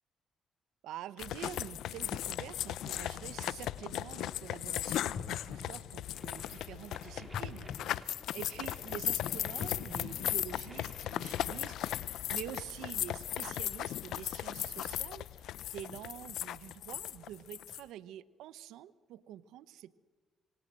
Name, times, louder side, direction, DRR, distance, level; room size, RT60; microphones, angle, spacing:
voice 1, 0.8-20.0, right 12 dB, 85° right, 17 dB, 1.0 m, -47 dB
sound 1, 1.2-17.8, left 12 dB, 80° left, 0.7 m, -37 dB
sound 2, 5.1-6.8 7.3-8.9 9.5-11.2 11.7-11.8, left 5 dB, 55° left, 5.5 m, -46 dB
sound 3, 6.1-11.8, right 1 dB, 10° right, 5.1 m, -55 dB
26.0 x 25.5 x 7.6 m, 1.4 s
cardioid pair, 75°, 0 cm